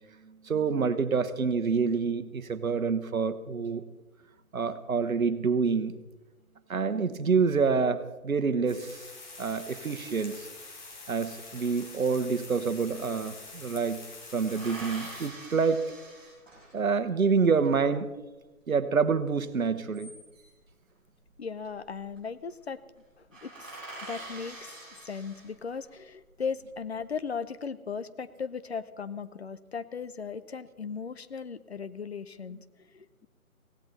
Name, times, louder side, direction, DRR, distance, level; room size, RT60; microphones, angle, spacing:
voice 1, 0.3-3.8 4.5-6.0 6.7-9.0 9.4-10.5 11.1-14.0 14.3-15.9 16.7-18.1 18.7-20.1, right 5 dB, 70° right, 12 dB, 1.2 m, -27 dB
sound 1, 8.7-15.3, left 3 dB, 30° left, 2.4 m, -46 dB
sound 2, 13.0-13.7 14.5-17.0 19.6-20.6 21.8-22.2 22.5-22.6 22.9-23.0 23.3-25.9 26.4-27.1, right 2 dB, ahead, 5.8 m, -45 dB
voice 2, 21.4-22.8 23.2-32.6 32.9-33.3, left 6 dB, 45° left, 14 dB, 0.6 m, -37 dB
16.5 x 16.5 x 4.1 m, 1.1 s
figure-of-eight pair, 150°, 43 cm